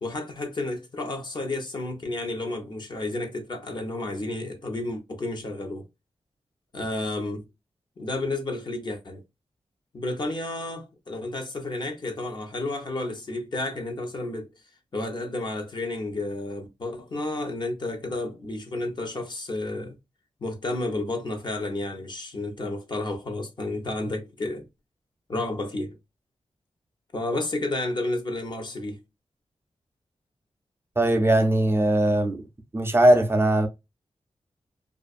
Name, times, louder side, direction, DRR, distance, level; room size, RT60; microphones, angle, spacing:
voice 1, 0.0-5.8 6.7-7.5 8.0-9.2 9.9-14.5 14.9-20.0 20.4-24.7 25.3-25.9 27.1-29.0, left 2 dB, 45° left, 0.8 m, -31 dB
voice 2, 31.0-32.4 32.7-33.7, right 1 dB, 20° right, 0.4 m, -20 dB
2.4 x 2.3 x 2.4 m
wide cardioid pair, 145°, 11 cm